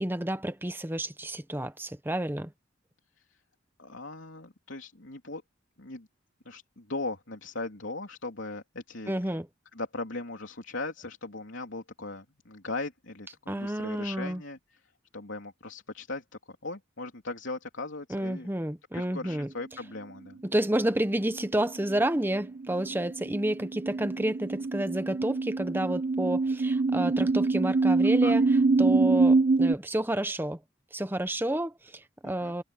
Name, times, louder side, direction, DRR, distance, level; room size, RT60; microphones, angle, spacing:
voice 1, 0.0-2.5 9.1-9.5 13.5-14.4 18.1-19.5 20.4-28.4 28.8-30.6 30.9-32.6, right 1 dB, 10° right, 1.0 m, -30 dB
voice 2, 3.8-5.4 5.8-6.1 6.5-9.3 9.7-14.8 15.1-18.5 18.9-20.4 28.2-28.4 32.2-32.6, left 2 dB, 75° left, 3.4 m, -39 dB
sound 1, 21.3-29.7, right 3 dB, 45° right, 0.4 m, -25 dB
head